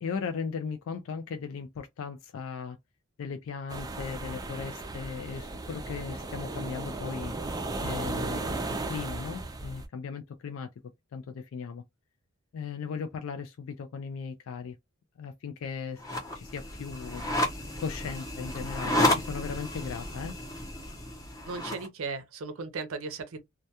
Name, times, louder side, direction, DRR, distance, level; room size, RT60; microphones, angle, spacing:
voice 1, 0.0-2.8 3.2-7.5 7.8-8.6 8.8-10.7 11.1-11.8 12.5-14.8 15.2-16.0 16.3-17.2 17.8-20.4, left 6 dB, 65° left, 0.3 m, -37 dB
sound 1, 3.7-9.9, right 2 dB, 15° right, 0.4 m, -35 dB
sound 2, 16.0-21.9, left 1 dB, 15° left, 0.6 m, -31 dB
voice 2, 21.5-23.4, right 4 dB, 70° right, 0.5 m, -36 dB
2.2 x 2.2 x 2.7 m
head